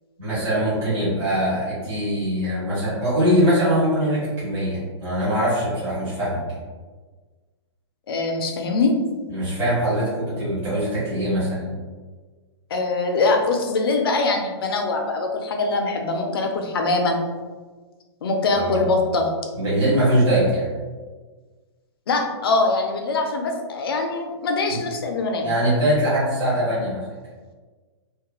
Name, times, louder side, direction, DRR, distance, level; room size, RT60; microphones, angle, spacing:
voice 1, 0.2-6.6 9.3-11.8 18.5-18.8 19.6-20.7 24.7-24.8 25.4-27.0, equal, 15° right, -11 dB, 0.7 m, -22 dB
voice 2, 8.1-9.0 12.7-17.2 18.2-19.3 22.1-25.5, left 3 dB, 55° left, 3 dB, 0.4 m, -23 dB
3.0 x 2.2 x 2.2 m, 1.4 s
hypercardioid pair, 180°, 15 cm